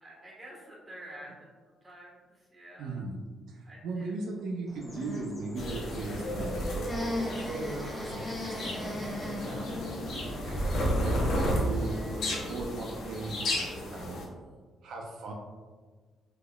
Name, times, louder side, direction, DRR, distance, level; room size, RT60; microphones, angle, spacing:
voice 1, 0.0-1.3 1.8-3.0 3.6-4.1, right 1 dB, 20° right, -5 dB, 1.2 m, -48 dB
voice 2, 2.8-3.2 3.5-14.4 14.8-15.3, right 3 dB, 75° right, 0 dB, 0.4 m, -39 dB
sound 1, 4.7-12.7, left 1 dB, 20° left, 0.8 m, -40 dB
sound 2, 5.6-14.2, equal, 70° left, 0.7 m, -32 dB
3.7 x 2.9 x 2.3 m, 1.4 s
cardioid pair, 90°, 0 cm